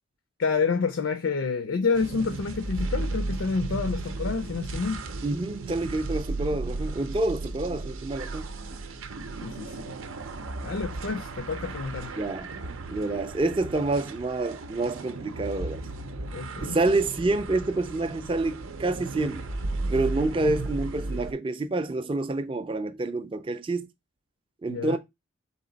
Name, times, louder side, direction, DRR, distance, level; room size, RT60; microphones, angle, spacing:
voice 1, 0.4-5.0 9.4-9.9 10.6-12.2 16.3-16.8 24.7-25.0, left 4 dB, 75° left, 0.5 m, -28 dB
sound 1, 1.9-21.3, right 2 dB, 90° right, 0.6 m, -35 dB
voice 2, 5.2-8.5 12.2-12.5 12.9-15.8 16.6-19.5 19.9-23.9 24.6-25.0, right 2 dB, 25° right, 0.3 m, -28 dB
4.1 x 2.8 x 3.9 m
head